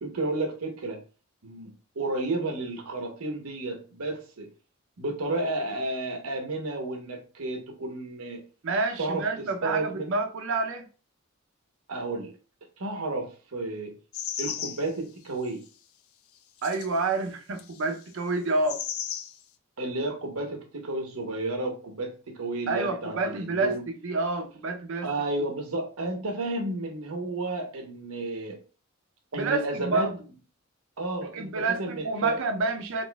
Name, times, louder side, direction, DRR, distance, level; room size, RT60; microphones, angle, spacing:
voice 1, 0.0-1.0 1.4-1.7 2.0-4.5 5.0-8.4 9.0-9.2 9.6-10.1 11.9-12.3 12.8-13.9 14.4-15.6 19.8-23.8 25.0-28.6 29.3-30.1 31.0-32.3, right 2 dB, 85° right, 0.8 m, -32 dB
voice 2, 8.6-10.9 16.6-18.8 22.7-23.8 24.0-25.1 29.3-30.1 31.3-33.0, right 3 dB, 60° right, 0.5 m, -28 dB
sound 1, 14.1-14.9 15.4-15.5 16.6-17.0 17.6-17.9 18.7-19.4, left 9 dB, 70° left, 0.4 m, -34 dB
4.1 x 2.5 x 2.2 m
head